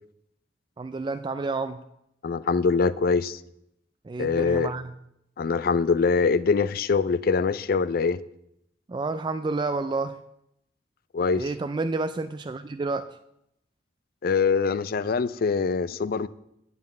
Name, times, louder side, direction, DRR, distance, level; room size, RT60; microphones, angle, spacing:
voice 1, 0.8-1.8 4.0-4.9 8.9-10.2 11.4-13.1, right 3 dB, 25° right, 10 dB, 0.3 m, -29 dB
voice 2, 2.2-3.4 4.2-4.7 5.4-8.2 11.1-11.5 14.2-16.3, left 5 dB, 55° left, 17 dB, 0.4 m, -23 dB
9.3 x 5.4 x 7.6 m, 0.80 s
head